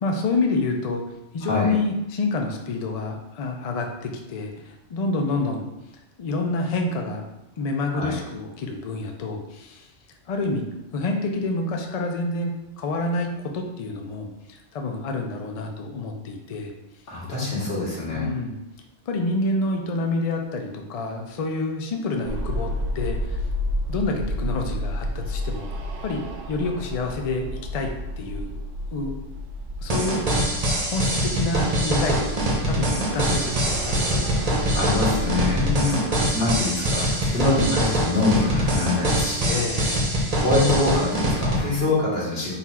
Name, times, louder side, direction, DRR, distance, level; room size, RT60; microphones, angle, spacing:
voice 1, 0.0-1.0 1.3-5.7 6.2-7.2 7.6-9.9 10.3-10.6 10.9-16.7 18.1-18.6 19.1-23.4 23.9-25.7 26.0-26.2 26.5-27.9 28.2-28.5 28.9-29.1 29.8-30.3 30.9-35.2 35.6-36.1 39.5-40.1, left 3 dB, 75° left, 3 dB, 0.3 m, -28 dB
voice 2, 1.4-1.7 7.9-8.1 17.1-18.3 34.7-35.6 35.9-36.0 36.3-39.6 40.4-42.5, left 2 dB, 55° left, -6 dB, 1.6 m, -24 dB
sound 1, 22.2-35.7, equal, 65° right, 0.8 m, -31 dB
sound 2, 29.9-41.6, right 1 dB, 35° right, 0.7 m, -24 dB
4.0 x 2.4 x 4.2 m, 0.92 s
omnidirectional pair, 1.3 m